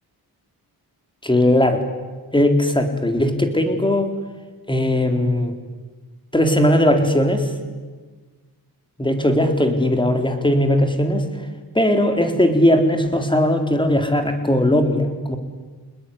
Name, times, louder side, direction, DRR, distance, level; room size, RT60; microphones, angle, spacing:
voice 1, 1.2-1.8 2.3-4.1 4.7-5.5 6.3-7.5 9.0-11.5 11.7-15.4, left 1 dB, 10° left, 5 dB, 4.1 m, -18 dB
28.0 x 20.0 x 9.9 m, 1.4 s
cardioid pair, 80°, 40 cm